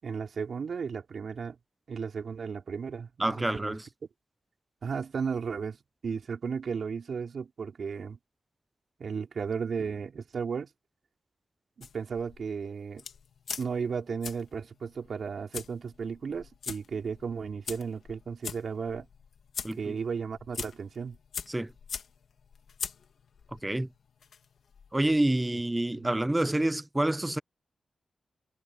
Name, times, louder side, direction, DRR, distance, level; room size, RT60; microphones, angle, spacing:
voice 1, 0.0-1.6 1.9-3.8 4.8-5.8 6.0-8.2 9.0-10.7 11.8-13.0 13.6-19.1 19.8-21.2 25.5-25.6 26.0-26.1, right 6 dB, 70° right, 4.9 m, -34 dB
voice 2, 3.2-3.8 19.6-19.9 21.5-21.7 23.6-23.9 24.9-27.4, right 1 dB, 20° right, 0.9 m, -27 dB
sound 1, 11.8-25.4, left 6 dB, 80° left, 2.3 m, -43 dB
cardioid pair, 50°, 0 cm